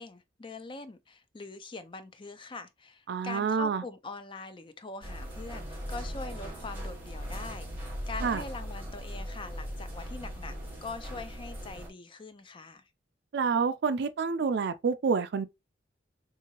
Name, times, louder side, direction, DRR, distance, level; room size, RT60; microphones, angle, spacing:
voice 1, 0.0-10.6 10.8-12.8, left 3 dB, 25° left, 0.4 m, -43 dB
voice 2, 3.1-3.8 8.2-8.4 13.3-15.5, right 5 dB, 65° right, 0.4 m, -28 dB
sound 1, 5.0-11.9, equal, 10° right, 1.3 m, -39 dB
3.7 x 2.7 x 2.8 m
head